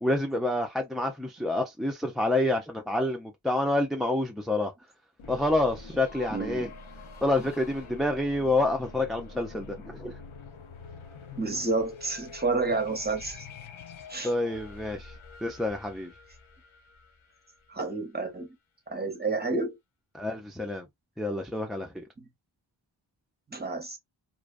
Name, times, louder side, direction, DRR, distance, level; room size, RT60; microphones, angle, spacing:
voice 1, 0.0-4.7 5.3-6.7 7.2-10.1 14.2-15.1 15.4-16.1 20.1-20.9 21.2-22.0, left 2 dB, ahead, 0.4 m, -28 dB
sound 1, 5.2-17.9, left 3 dB, 80° left, 0.7 m, -46 dB
voice 2, 6.3-6.7 11.3-13.5 14.1-14.3 17.7-18.5 18.9-19.8 22.2-22.3 23.5-24.0, right 3 dB, 20° right, 0.9 m, -30 dB
2.5 x 2.2 x 2.4 m
wide cardioid pair, 55°, 48 cm